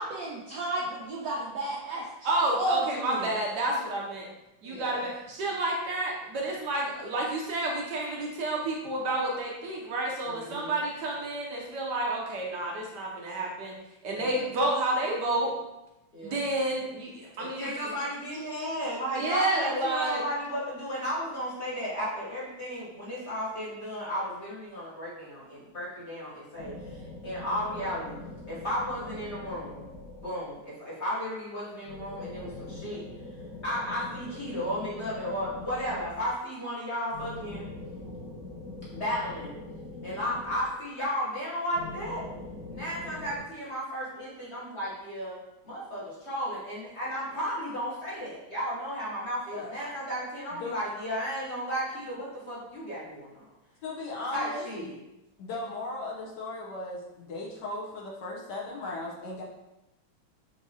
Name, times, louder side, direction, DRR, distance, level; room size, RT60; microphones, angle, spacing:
voice 1, 0.0-2.0 2.5-3.3, right 1 dB, 85° right, -3 dB, 0.7 m, -32 dB
voice 2, 2.2-4.3 4.6-13.7 14.0-15.5 16.2-17.7 19.2-20.2, right 2 dB, 70° right, -2 dB, 1.1 m, -30 dB
voice 3, 4.6-5.0 10.2-10.7 14.1-14.4 16.1-16.4 17.4-28.2 28.5-29.8 30.2-33.0 33.6-37.7 38.9-39.5 40.0-42.2 42.7-45.4 45.6-53.5 54.3-54.9, equal, 45° left, -7 dB, 1.0 m, -34 dB
sound 1, 26.5-30.7 31.8-36.5 37.1-41.1 41.7-43.4, left 2 dB, 90° left, 2.0 m, -43 dB
voice 4, 53.8-55.0 55.4-59.4, left 2 dB, 65° left, -3 dB, 1.2 m, -37 dB
5.9 x 2.7 x 2.7 m, 0.94 s
omnidirectional pair, 2.2 m